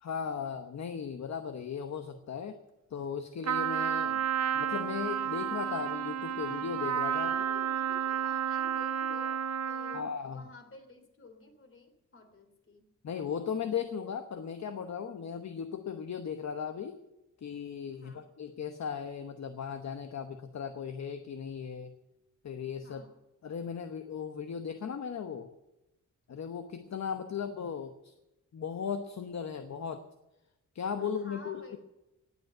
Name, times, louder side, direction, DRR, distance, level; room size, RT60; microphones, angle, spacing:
voice 1, 0.0-2.6 2.9-4.2 4.5-7.3 9.9-10.4 13.0-17.0 17.4-21.9 22.4-23.0 23.4-25.5 26.3-28.1 28.5-30.0 30.7-31.8, left 7 dB, 60° left, 8 dB, 1.0 m, -37 dB
Trumpet, 3.4-10.1, right 9 dB, 60° right, 0.7 m, -31 dB
voice 2, 7.1-12.8 17.9-18.3 22.8-23.1 31.0-31.8, left 3 dB, 45° left, 6 dB, 3.1 m, -52 dB
19.0 x 8.2 x 7.8 m, 0.93 s
wide cardioid pair, 160°, 30 cm